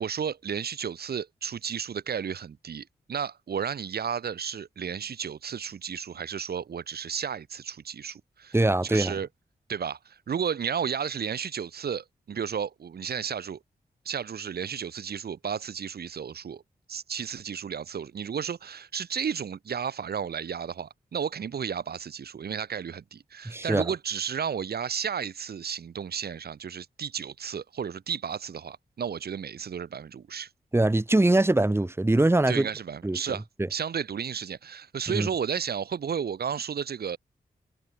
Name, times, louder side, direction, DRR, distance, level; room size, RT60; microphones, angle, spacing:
voice 1, 0.0-8.6 8.8-9.3 9.7-13.6 14.0-16.6 16.9-30.5 32.5-33.4 33.7-37.2, right 7 dB, 75° right, 2.8 m, -33 dB
voice 2, 8.5-9.2 23.4-23.9 30.7-32.7 33.0-33.2 35.1-35.3, right 2 dB, 15° right, 1.5 m, -22 dB
cardioid pair, 65°, 16 cm